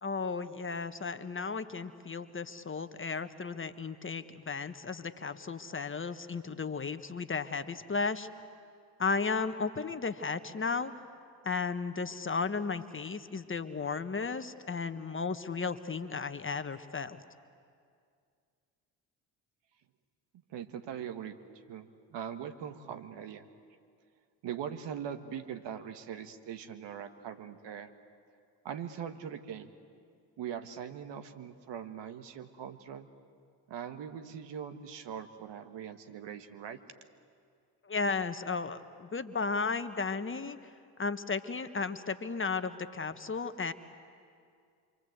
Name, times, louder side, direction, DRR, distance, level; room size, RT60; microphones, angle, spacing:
voice 1, 0.0-8.3 9.0-10.9 11.4-17.2 37.8-40.6 41.0-43.7, left 4 dB, 25° left, 9 dB, 1.3 m, -34 dB
voice 2, 20.5-21.4 21.7-23.5 24.4-27.9 28.6-29.7 30.4-33.1 33.7-36.8, right 8 dB, 65° right, 9 dB, 1.7 m, -41 dB
27.5 x 24.5 x 8.1 m, 2.3 s
hypercardioid pair, 50°, 47 cm